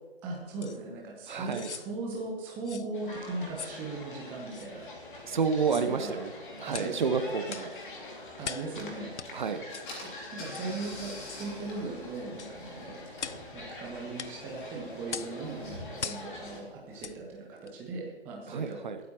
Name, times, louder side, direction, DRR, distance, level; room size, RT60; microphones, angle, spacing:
voice 1, 0.2-4.9 5.7-6.2 6.7-7.0 8.4-9.2 10.3-13.1 13.5-18.8, right 3 dB, 5° right, -2 dB, 0.6 m, -38 dB
sound 1, 0.6-0.8 1.4-1.9 2.6-2.9 3.5-3.8 4.5-4.7 5.6-5.9 6.7-7.0 7.5-7.7 8.4-8.7 9.2-9.3 9.7-9.9 10.5-10.7 11.3-11.5 12.4-12.6 13.2-13.4 14.2-14.3 15.1-15.4 16.0-16.3 17.0-17.2 17.7-17.8, left 7 dB, 80° left, 0.5 m, -40 dB
voice 2, 1.3-1.7 5.2-7.8 9.3-9.6 18.5-19.0, right 5 dB, 45° right, 9 dB, 0.9 m, -30 dB
sound 2, 2.9-16.6, left 2 dB, 45° left, 2.5 m, -45 dB
Car / Engine, 9.4-9.5 9.8-17.3, left 1 dB, 25° left, 2.8 m, -47 dB
21.5 x 8.4 x 3.0 m, 1.3 s
figure-of-eight pair, 135°, 34 cm